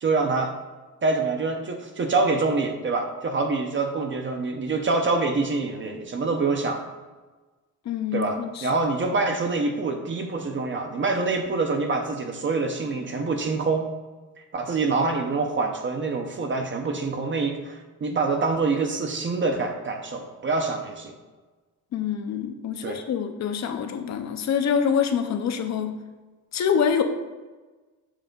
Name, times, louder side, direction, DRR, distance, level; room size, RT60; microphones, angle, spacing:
voice 1, 0.0-0.5 1.0-6.9 8.1-13.9 14.4-21.2 22.8-23.0, right 3 dB, 35° right, 4 dB, 0.6 m, -26 dB
voice 2, 7.8-8.7 21.9-26.0 26.5-27.0, left 7 dB, 50° left, 7 dB, 0.7 m, -26 dB
7.4 x 3.4 x 5.2 m, 1.3 s
cardioid pair, 155°, 34 cm